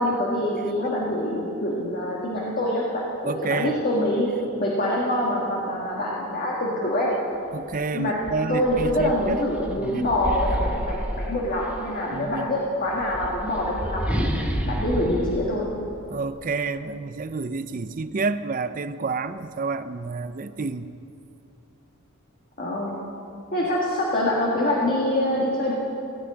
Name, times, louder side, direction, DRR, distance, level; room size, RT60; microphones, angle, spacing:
voice 1, 0.0-4.3 4.6-7.1 7.9-8.1 8.5-14.3 14.6-15.7 22.6-23.0 23.5-25.7, left 1 dB, 40° left, -4 dB, 1.6 m, -25 dB
voice 2, 3.2-3.8 7.5-9.4 9.8-10.2 12.1-12.6 16.1-20.9, right 4 dB, 40° right, 12 dB, 0.5 m, -29 dB
sound 1, 7.7-7.8 8.2-11.9 12.8-16.5, equal, 5° right, 0.9 m, -30 dB
16.0 x 6.1 x 9.6 m, 2.7 s
head